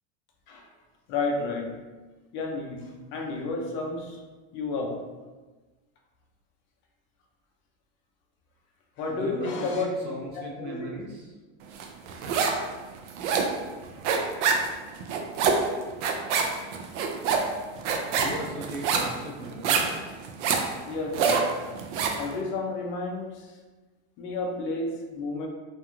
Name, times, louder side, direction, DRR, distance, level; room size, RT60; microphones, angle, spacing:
voice 1, 1.1-1.8 2.3-4.2 4.5-5.0 9.0-9.9 10.3-10.9 15.6-15.8 20.9-21.5 22.2-23.5 24.2-25.5, left 3 dB, 35° left, 1 dB, 0.4 m, -31 dB
voice 2, 9.1-11.3 18.1-20.0, right 1 dB, 30° right, -2 dB, 0.5 m, -37 dB
sound 1, 11.8-12.7 12.9-22.3, right 5 dB, 75° right, 0.5 m, -26 dB
2.5 x 2.2 x 2.9 m, 1.3 s
supercardioid pair, 155°, 35 cm